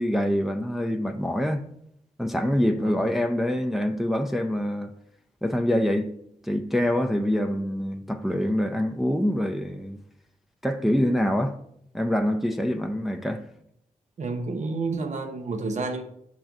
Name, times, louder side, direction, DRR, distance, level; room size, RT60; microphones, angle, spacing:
voice 1, 0.0-1.7 2.2-4.9 5.4-6.1 6.4-10.0 10.6-11.6 11.9-13.4, equal, ahead, 0.5 m, -25 dB
voice 2, 14.2-16.0, right 3 dB, 60° right, 1.0 m, -30 dB
7.7 x 3.9 x 5.9 m
wide cardioid pair, 105°, 14 cm